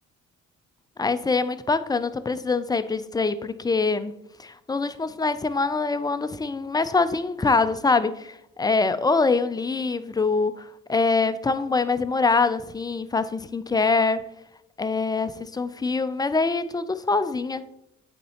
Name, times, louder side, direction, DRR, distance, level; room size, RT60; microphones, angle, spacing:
voice 1, 1.0-4.1 4.4-14.2 14.8-17.6, left 4 dB, 15° left, 12 dB, 0.3 m, -24 dB
8.3 x 4.2 x 2.8 m, 0.81 s
cardioid pair, 90°, 30 cm